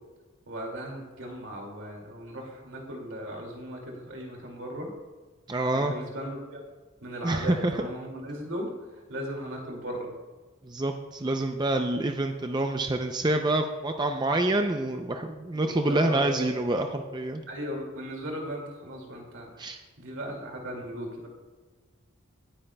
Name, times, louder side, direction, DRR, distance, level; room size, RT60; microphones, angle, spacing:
voice 1, 0.5-4.9 5.7-6.6 7.0-8.7 9.1-10.1 15.5-16.4 17.5-19.6 20.0-21.3, equal, 70° right, 0 dB, 2.3 m, -37 dB
voice 2, 5.5-5.9 7.2-7.7 10.6-17.4 19.6-19.8, right 2 dB, 20° right, 5 dB, 0.4 m, -27 dB
18.0 x 8.8 x 2.2 m, 1.4 s
head